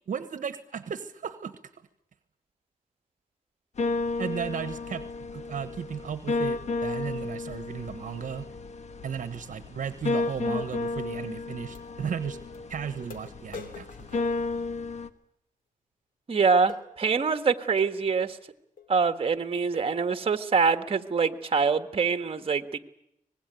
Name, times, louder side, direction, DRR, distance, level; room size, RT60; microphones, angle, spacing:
voice 1, 0.1-1.5 4.2-5.0 5.3-8.5 9.0-12.4 12.7-14.2, right 7 dB, 65° right, 11 dB, 1.2 m, -35 dB
sound 1, 3.8-15.1, left 3 dB, 55° left, 1.5 m, -33 dB
sound 2, 10.7-10.8 11.7-11.9 12.5-12.6 13.1-15.1 16.7-16.9 17.8-18.0 18.8-18.9 19.3-19.4 19.7-20.0 20.6-20.8, left 5 dB, 75° left, 2.8 m, -46 dB
voice 2, 16.3-18.4 18.9-22.8, right 5 dB, 40° right, 9 dB, 1.5 m, -25 dB
24.5 x 20.0 x 9.2 m, 0.78 s
cardioid pair, 95°, 14 cm